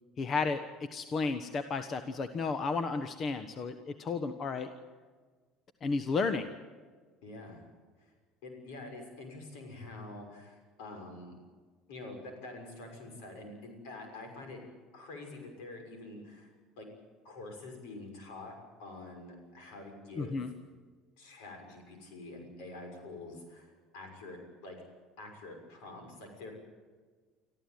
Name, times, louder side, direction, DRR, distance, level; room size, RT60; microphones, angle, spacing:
voice 1, 0.2-0.6 0.9-4.7 5.8-6.5 20.2-20.5, left 4 dB, 45° left, 9 dB, 1.2 m, -32 dB
voice 2, 7.2-7.6 8.0-8.1 8.4-11.4 11.9-14.6 14.9-16.5 16.8-16.9 17.2-20.4 21.2-24.8 25.2-26.5, left 2 dB, 80° left, 3 dB, 6.4 m, -46 dB
26.0 x 14.5 x 9.3 m, 1.5 s
supercardioid pair, 85°, 0 cm